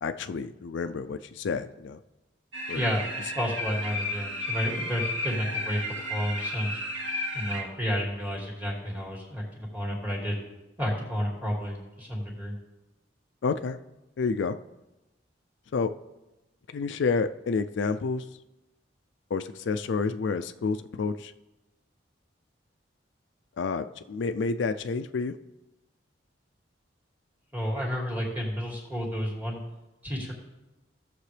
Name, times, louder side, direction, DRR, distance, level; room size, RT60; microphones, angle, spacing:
voice 1, 0.0-2.0 2.7-2.8 13.4-13.8 14.2-14.6 15.7-15.9 16.7-18.2 19.3-21.3 23.6-25.3, left 4 dB, 70° left, 10 dB, 0.4 m, -29 dB
sound 1, 2.5-7.6, left 1 dB, 80° right, 2.0 m, -33 dB
voice 2, 2.7-6.8 7.3-10.4 10.8-12.5 27.5-29.6 30.0-30.3, equal, 10° right, -2 dB, 2.3 m, -31 dB
16.5 x 6.8 x 3.3 m, 1.0 s
head